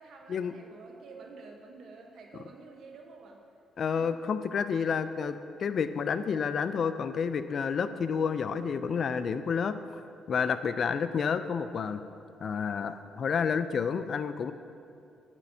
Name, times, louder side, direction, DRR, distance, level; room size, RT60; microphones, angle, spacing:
voice 1, 0.0-3.4 3.9-4.1, right 4 dB, 70° right, 2 dB, 0.9 m, -50 dB
voice 2, 3.8-9.8 10.3-12.0 12.4-14.5, left 6 dB, 55° left, 11 dB, 0.3 m, -30 dB
9.4 x 7.2 x 2.7 m, 2.6 s
cardioid pair, 90°, 0 cm